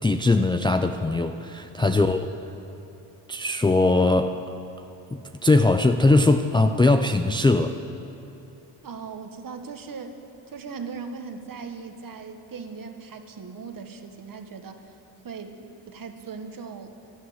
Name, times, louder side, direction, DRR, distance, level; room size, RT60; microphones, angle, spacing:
voice 1, 0.0-2.3 3.3-4.4 5.1-7.8, left 2 dB, 10° left, 6 dB, 0.4 m, -20 dB
voice 2, 8.8-10.2 10.5-14.9 15.2-16.9, right 5 dB, 45° right, 6 dB, 1.5 m, -39 dB
12.5 x 11.5 x 9.5 m, 2.9 s
cardioid pair, 90°, 47 cm